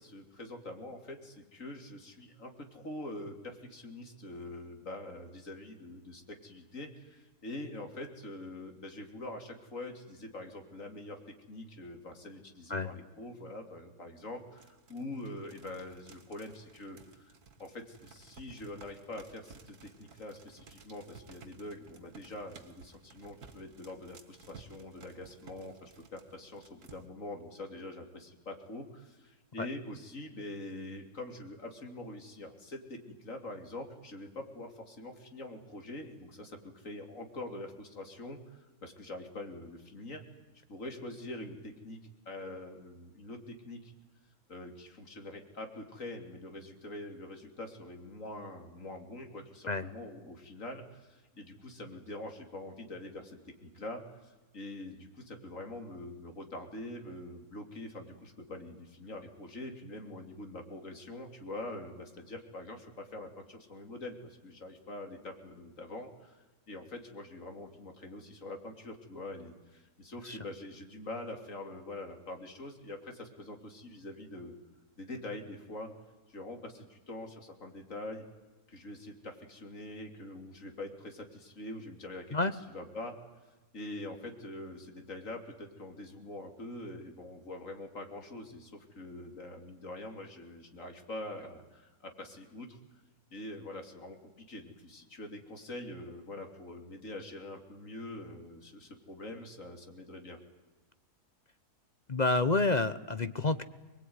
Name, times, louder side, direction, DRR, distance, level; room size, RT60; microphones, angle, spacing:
voice 1, 0.0-11.2 11.5-17.3 17.6-40.2 40.7-42.0 42.3-43.9 44.5-74.5 75.0-75.9 76.3-78.2 78.7-83.2 83.7-92.8 93.3-100.4, left 2 dB, 55° left, 4 dB, 3.5 m, -44 dB
sound 1, 14.4-27.1, right 5 dB, 70° right, 2.2 m, -56 dB
voice 2, 102.1-103.6, left 3 dB, 35° left, 12 dB, 0.8 m, -29 dB
24.0 x 21.5 x 9.6 m, 1.2 s
omnidirectional pair, 1.6 m